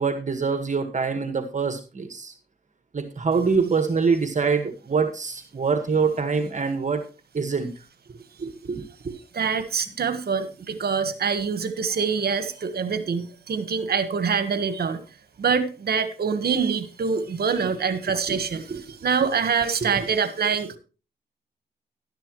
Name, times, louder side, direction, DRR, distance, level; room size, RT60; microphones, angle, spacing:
voice 1, 0.0-2.3 2.9-7.1 7.3-7.7 8.4-9.1 18.3-18.4 18.7-18.8 19.8-19.9, right 5 dB, 45° right, 7 dB, 1.7 m, -25 dB
voice 2, 9.3-15.0 15.4-18.6 19.0-20.8, right 6 dB, 65° right, 11 dB, 1.4 m, -25 dB
11.5 x 11.5 x 3.2 m, 0.33 s
cardioid pair, 65°, 18 cm